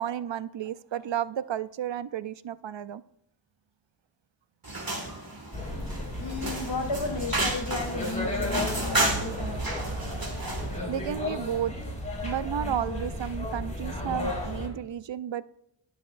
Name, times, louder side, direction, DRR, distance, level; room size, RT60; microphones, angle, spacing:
voice 1, 0.0-3.0 7.9-8.3 8.7-9.2 9.5-11.7 12.2-15.4, right 10 dB, 65° right, 0.5 m, -33 dB
sound 1, 4.6-10.8, right 2 dB, 45° right, 2.1 m, -32 dB
sound 2, 5.5-14.7, left 1 dB, 15° left, 4.0 m, -34 dB
voice 2, 6.2-9.9, left 3 dB, 60° left, 3.2 m, -34 dB
19.5 x 6.5 x 2.5 m
wide cardioid pair, 45°, 48 cm